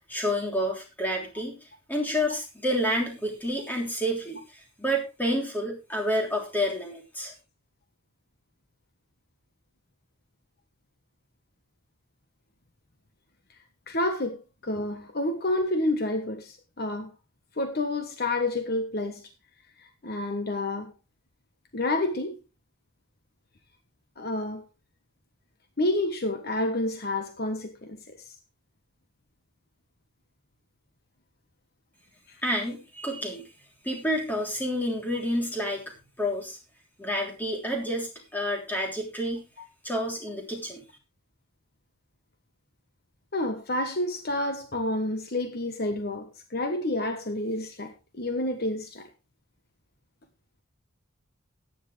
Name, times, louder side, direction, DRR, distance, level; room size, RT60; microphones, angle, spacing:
voice 1, 0.1-1.6 1.9-7.3 32.4-33.4 33.8-35.8 36.2-36.6 37.0-39.4 39.8-40.8, equal, 10° left, 3.4 m, -29 dB
voice 2, 13.9-17.1 17.6-19.3 19.8-20.9 21.7-22.4 24.2-24.6 25.8-28.3 32.3-32.4 43.3-49.1, left 1 dB, 50° left, 1.3 m, -29 dB
14.5 x 9.8 x 3.3 m
head